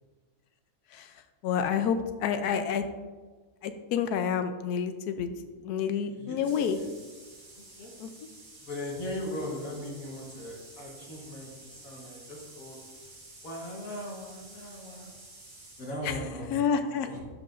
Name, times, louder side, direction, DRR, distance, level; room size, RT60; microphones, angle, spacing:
voice 1, 1.4-2.8 3.6-5.3 5.6-6.8 8.0-8.1 16.0-16.2 16.5-17.1, left 7 dB, 85° left, 9 dB, 1.1 m, -28 dB
sound 1, 6.4-15.9, right 2 dB, 50° right, 2.1 m, -51 dB
voice 2, 7.5-7.9 8.6-12.8 13.4-15.1 15.8-16.6 16.9-17.2, left 1 dB, 65° left, -3 dB, 1.7 m, -39 dB
13.0 x 4.8 x 2.5 m, 1.4 s
omnidirectional pair, 1.6 m